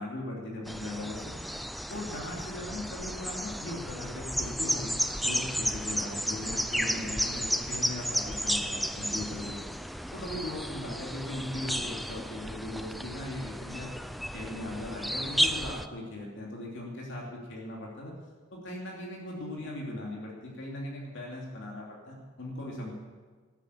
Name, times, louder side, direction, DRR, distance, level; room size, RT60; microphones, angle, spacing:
voice 1, 0.0-1.3 1.9-9.6 10.1-13.9 14.3-18.1 18.5-22.9, left 1 dB, 60° left, -2 dB, 2.8 m, -39 dB
sound 1, 0.7-15.9, equal, ahead, 0.3 m, -33 dB
13.0 x 9.0 x 8.5 m, 1.4 s
head